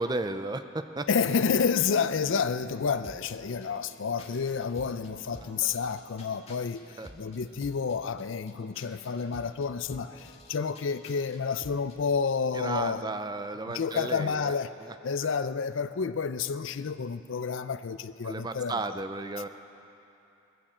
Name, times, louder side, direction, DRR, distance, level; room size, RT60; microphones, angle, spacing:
voice 1, 0.0-1.1 7.0-7.1 12.5-14.5 14.8-14.9 18.2-19.5, right 2 dB, 20° right, 9 dB, 0.5 m, -33 dB
voice 2, 1.1-13.1 13.7-14.7 15.0-19.0, left 5 dB, 65° left, 13 dB, 0.5 m, -30 dB
sound 1, 3.0-12.0, left 1 dB, 30° left, 1.7 m, -51 dB
20.0 x 15.0 x 4.3 m, 2.8 s
head